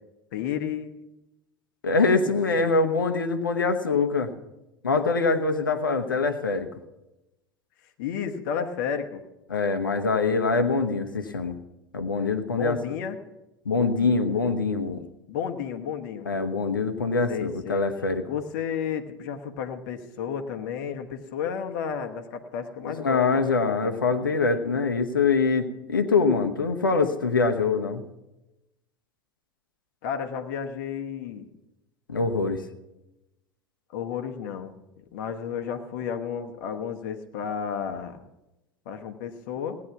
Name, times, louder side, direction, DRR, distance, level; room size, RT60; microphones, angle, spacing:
voice 1, 0.3-1.0 2.6-2.7 8.0-9.2 12.4-13.2 15.3-16.3 17.3-17.8 18.3-23.5 30.0-31.5 33.9-34.7 35.1-38.2 38.8-39.8, left 7 dB, 65° left, 6 dB, 1.2 m, -32 dB
voice 2, 1.8-4.3 4.8-6.7 9.5-11.5 11.9-13.0 13.6-15.0 16.3-18.3 22.9-28.0 32.1-32.6, left 4 dB, 85° left, 7 dB, 1.0 m, -24 dB
16.5 x 9.7 x 5.9 m, 0.95 s
figure-of-eight pair, 75°, 11 cm